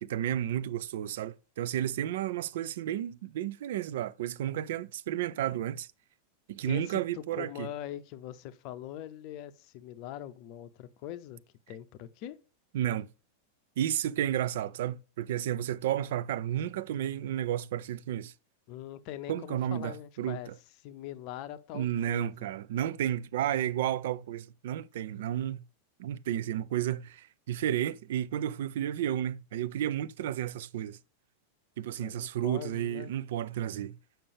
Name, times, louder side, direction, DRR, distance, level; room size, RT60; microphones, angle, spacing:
voice 1, 0.0-5.9 6.5-7.7 12.7-13.1 13.8-18.3 19.3-20.5 21.7-25.6 26.0-31.0 31.8-34.0, right 11 dB, 55° right, 0.3 m, -32 dB
voice 2, 6.6-11.4 11.7-12.4 18.7-20.5 20.8-22.5 32.0-33.1, left 12 dB, 45° left, 0.6 m, -42 dB
6.7 x 5.8 x 3.5 m
figure-of-eight pair, 90°, 0 cm